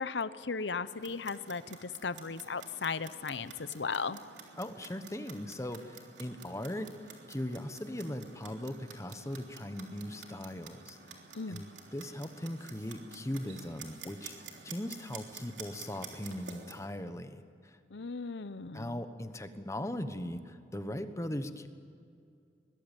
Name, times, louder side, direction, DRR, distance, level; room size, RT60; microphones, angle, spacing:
voice 1, 0.0-4.2 11.3-11.6 17.9-19.0, left 5 dB, 85° left, 14 dB, 0.9 m, -36 dB
Clock, 0.8-16.9, right 5 dB, 90° right, 3.5 m, -51 dB
voice 2, 4.6-11.2 11.5-14.3 14.6-17.8 18.7-21.7, left 1 dB, 15° left, 9 dB, 1.2 m, -39 dB
23.0 x 20.0 x 9.2 m, 2.4 s
head